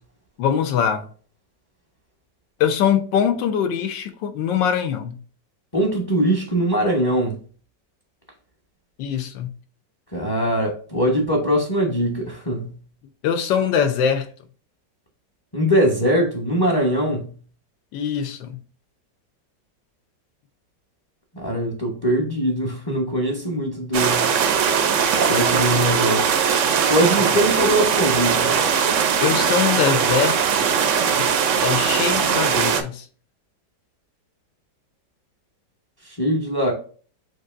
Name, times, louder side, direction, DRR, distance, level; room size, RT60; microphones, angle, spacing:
voice 1, 0.4-1.1 2.6-5.2 9.0-9.5 13.2-14.3 17.9-18.6 29.2-30.4 31.2-31.3 31.6-33.1, left 8 dB, 85° left, 1.4 m, -22 dB
voice 2, 5.7-7.4 10.1-12.7 15.5-17.3 21.3-24.3 25.2-26.3 26.9-28.5 36.1-36.7, equal, 25° left, 0.5 m, -21 dB
sound 1, 23.9-32.8, right 7 dB, 70° right, 0.7 m, -20 dB
7.5 x 2.7 x 2.5 m
omnidirectional pair, 1.9 m